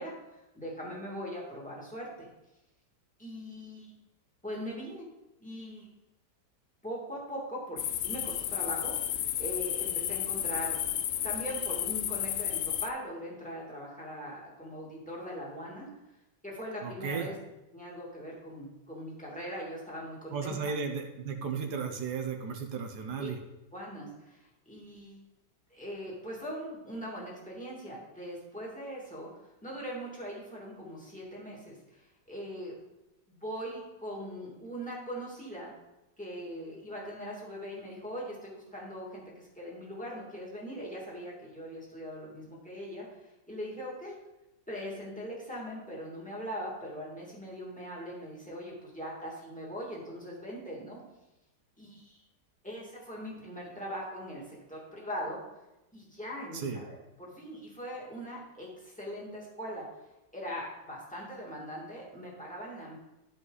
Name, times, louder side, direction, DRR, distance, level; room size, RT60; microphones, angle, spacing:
voice 1, 0.0-2.3 3.2-3.9 4.4-5.1 5.4-5.9 6.8-10.8 11.2-15.9 16.4-17.4 17.7-20.8 23.2-23.3 23.7-25.2 25.7-29.3 29.6-32.0 32.3-32.7 33.3-35.7 36.2-44.1 44.7-51.0 51.8-52.2 52.6-55.4 55.9-59.8 60.3-63.0, equal, 5° left, -5 dB, 2.3 m, -41 dB
sound 1, 7.8-12.9, left 11 dB, 90° left, 0.7 m, -32 dB
voice 2, 16.8-17.3 20.3-23.4 56.5-56.8, right 5 dB, 70° right, 5 dB, 1.4 m, -35 dB
12.5 x 5.4 x 4.0 m, 0.98 s
omnidirectional pair, 1.9 m